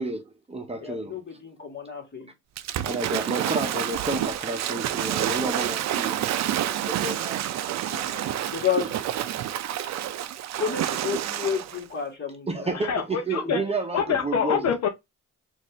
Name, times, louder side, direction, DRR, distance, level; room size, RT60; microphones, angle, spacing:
voice 1, 0.0-1.2 2.9-7.8 12.5-14.7, right 2 dB, 20° right, 0.8 m, -31 dB
voice 2, 0.8-2.3 7.9-9.0 10.6-13.0, left 7 dB, 35° left, 1.8 m, -31 dB
Waves surf / Splash splatter, 2.6-11.8, right 11 dB, 60° right, 0.5 m, -28 dB
voice 3, 12.7-13.6 13.9-14.9, left 7 dB, 60° left, 0.7 m, -25 dB
4.1 x 2.6 x 3.1 m
cardioid pair, 90°, 30 cm